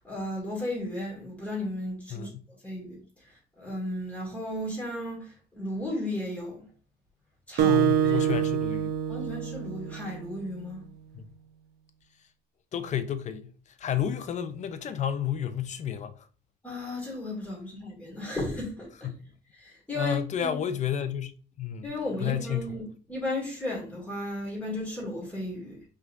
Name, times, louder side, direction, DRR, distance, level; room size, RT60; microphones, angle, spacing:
voice 1, 0.0-2.3 2.6-6.7 7.5-8.3 9.1-10.8 16.6-18.9 19.6-20.5 21.8-25.8, left 1 dB, 10° left, 2.0 m, -35 dB
voice 2, 2.1-2.5 7.6-8.9 11.1-11.3 12.7-16.1 19.0-19.2 19.9-21.9 22.2-22.8, left 9 dB, 45° left, 0.6 m, -31 dB
Acoustic guitar, 7.6-10.4, right 10 dB, 70° right, 0.7 m, -26 dB
5.6 x 3.5 x 2.5 m
cardioid pair, 150°, 18 cm